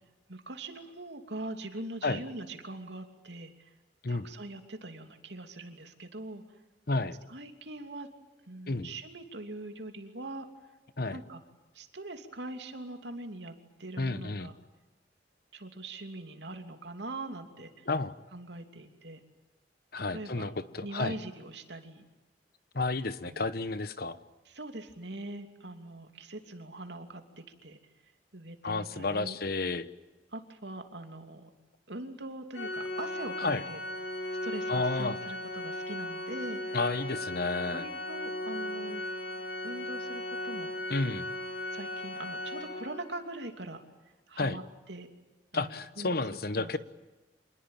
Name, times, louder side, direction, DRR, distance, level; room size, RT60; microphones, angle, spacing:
voice 1, 0.3-3.7 4.1-6.4 7.3-8.1 8.5-10.4 11.1-11.4 11.7-13.5 13.8-14.5 15.5-17.9 18.3-19.2 20.1-20.5 20.8-22.0 23.2-23.5 24.4-27.8 28.3-29.4 30.3-31.5 31.9-33.8 34.4-36.8 37.7-39.0 39.6-40.7 41.7-43.8 44.3-44.6 44.9-45.1 45.5-46.2 46.6-46.8, right 2 dB, 75° right, 5 dB, 2.9 m, -42 dB
voice 2, 14.0-14.5 17.9-18.1 19.9-21.2 22.7-24.2 28.6-29.9 33.4-33.6 34.7-35.1 36.7-37.9 40.9-41.3 44.4-44.6 45.5-46.8, left 3 dB, 55° left, 13 dB, 1.1 m, -31 dB
Organ, 32.5-43.2, left 1 dB, 70° left, 3.8 m, -37 dB
27.0 x 20.5 x 9.2 m, 1.2 s
head